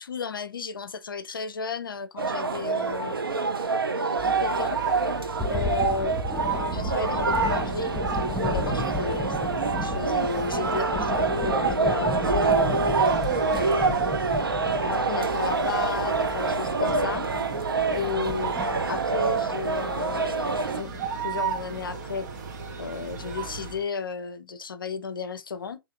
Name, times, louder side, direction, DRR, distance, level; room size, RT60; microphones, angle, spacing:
voice 1, 0.0-3.4 4.2-4.8 5.5-6.1 6.5-8.0 8.2-12.8 13.5-14.4 14.9-17.3 17.9-22.3 22.8-25.8, left 5 dB, 70° left, 0.5 m, -33 dB
sound 1, 2.2-20.8, right 4 dB, 75° right, 0.5 m, -26 dB
sound 2, 4.2-23.8, right 6 dB, 50° right, 0.9 m, -35 dB
sound 3, 5.4-21.2, left 2 dB, 5° left, 0.4 m, -35 dB
3.3 x 2.7 x 2.7 m
figure-of-eight pair, 115°, 12 cm